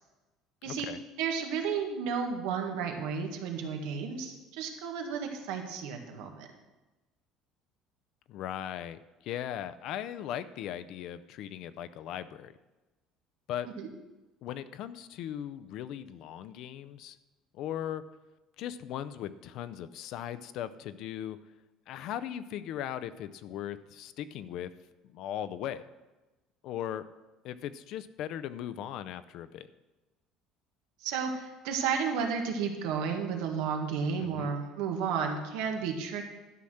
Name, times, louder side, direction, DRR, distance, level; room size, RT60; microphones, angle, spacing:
voice 1, 0.7-1.0 8.3-12.5 13.5-13.7 14.4-17.2 17.5-18.0 18.6-21.4 21.9-24.7 25.1-25.8 26.6-27.0 27.4-29.7 34.2-34.5, left 10 dB, 50° left, 13 dB, 0.5 m, -38 dB
voice 2, 1.2-6.5 13.8-13.9 31.0-36.2, right 6 dB, 90° right, 3 dB, 1.7 m, -32 dB
12.0 x 5.8 x 6.4 m, 1.1 s
cardioid pair, 175°, 0 cm